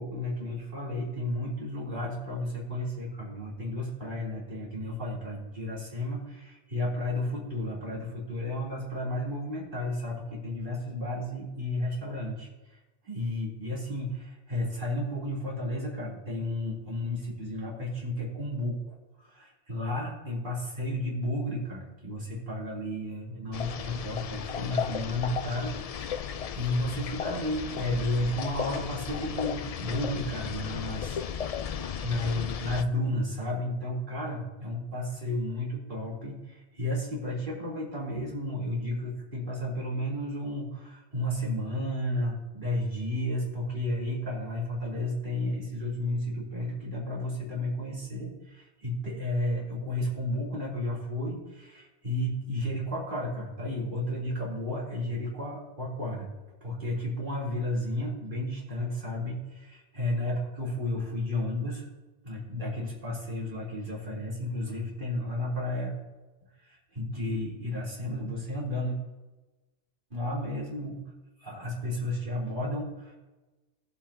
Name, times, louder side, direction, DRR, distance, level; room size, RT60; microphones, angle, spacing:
voice 1, 0.0-12.8 13.0-31.7 32.0-56.3 56.6-61.9 62.2-65.9 66.6-69.0 70.1-71.0 71.4-73.1, left 1 dB, 45° right, -5 dB, 3.6 m, -32 dB
sound 1, 23.5-32.8, left 8 dB, 65° left, 0.3 m, -35 dB
20.0 x 7.6 x 2.9 m, 1.1 s
omnidirectional pair, 1.2 m